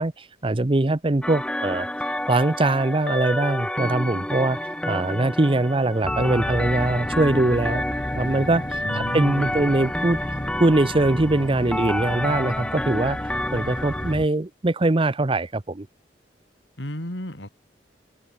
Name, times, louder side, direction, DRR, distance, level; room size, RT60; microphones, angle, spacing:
voice 1, 0.0-1.9 2.3-7.8 8.1-10.2 10.6-13.2 13.5-15.9, right 2 dB, 30° right, 0.8 m, -22 dB
sound 1, 1.2-14.1, left 1 dB, 5° left, 1.4 m, -29 dB
sound 2, 6.0-14.3, left 1 dB, 25° left, 1.1 m, -33 dB
voice 2, 8.8-9.6 16.8-17.5, equal, 80° left, 5.8 m, -32 dB
open air
head